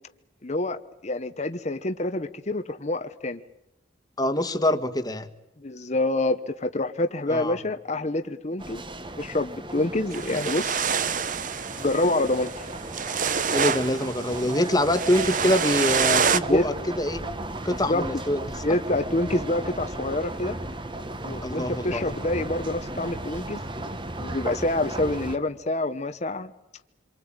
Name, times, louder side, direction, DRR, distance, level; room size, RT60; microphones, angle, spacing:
voice 1, 0.4-3.4 5.6-8.8 9.2-10.9 11.8-12.6 16.5-16.6 17.9-18.0 18.6-20.6 21.2-23.6 24.2-26.5, left 2 dB, 40° left, 8 dB, 1.0 m, -27 dB
voice 2, 4.2-5.3 7.3-7.6 13.5-17.3 17.6-18.5 21.4-22.2, left 1 dB, 20° left, 9 dB, 1.7 m, -25 dB
sound 1, 8.6-25.4, right 2 dB, 25° right, 1.5 m, -35 dB
sound 2, 10.1-16.4, right 6 dB, 45° right, 0.9 m, -27 dB
27.5 x 23.5 x 8.9 m, 0.88 s
head